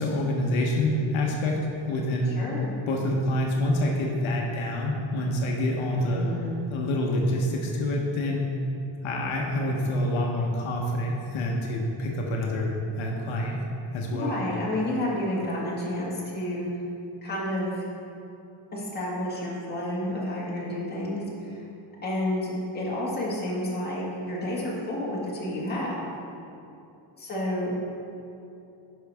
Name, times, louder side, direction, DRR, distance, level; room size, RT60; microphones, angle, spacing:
voice 1, 0.0-2.3 2.9-6.2 6.7-8.5 9.0-13.6 13.9-14.3, left 1 dB, 75° left, -1 dB, 1.1 m, -27 dB
voice 2, 2.4-2.7 6.0-6.6 14.1-16.7 17.2-17.9 18.7-21.6 22.0-26.0 27.2-27.7, left 1 dB, 20° left, -6 dB, 1.9 m, -30 dB
10.5 x 5.6 x 3.5 m, 2.8 s
cardioid pair, 155°, 47 cm